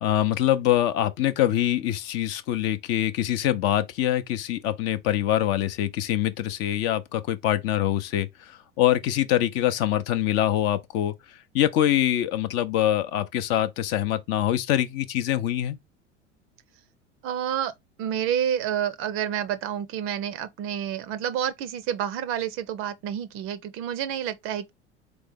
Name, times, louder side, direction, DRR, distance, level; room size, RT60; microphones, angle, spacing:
voice 1, 0.0-11.1 11.5-15.8, left 12 dB, 40° left, 0.6 m, -24 dB
voice 2, 17.2-17.7 18.0-24.7, right 9 dB, 35° right, 0.5 m, -29 dB
3.9 x 3.4 x 3.5 m
figure-of-eight pair, 75°, 36 cm